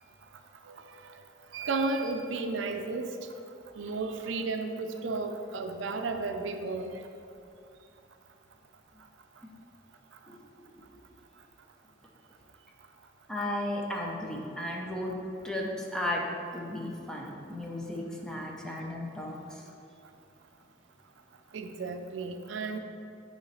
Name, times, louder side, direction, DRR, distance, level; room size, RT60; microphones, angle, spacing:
voice 1, 1.5-3.1 3.8-7.0 21.5-22.8, right 3 dB, 80° right, 6 dB, 0.4 m, -33 dB
voice 2, 13.3-15.1 15.4-16.2 16.5-19.7, left 1 dB, 5° left, -2 dB, 0.7 m, -35 dB
6.9 x 3.2 x 5.6 m, 2.6 s
head